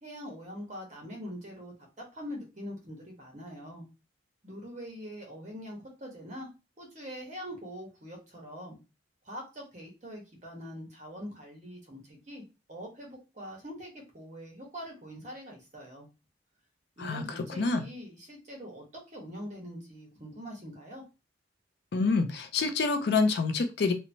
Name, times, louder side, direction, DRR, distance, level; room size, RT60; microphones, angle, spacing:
voice 1, 0.0-3.9 4.4-6.5 6.8-8.8 9.2-12.4 12.7-16.1 17.0-21.0, equal, 40° right, 0 dB, 1.0 m, -43 dB
voice 2, 21.9-23.9, left 4 dB, 60° left, 8 dB, 0.4 m, -27 dB
2.9 x 2.1 x 2.6 m, 0.28 s
head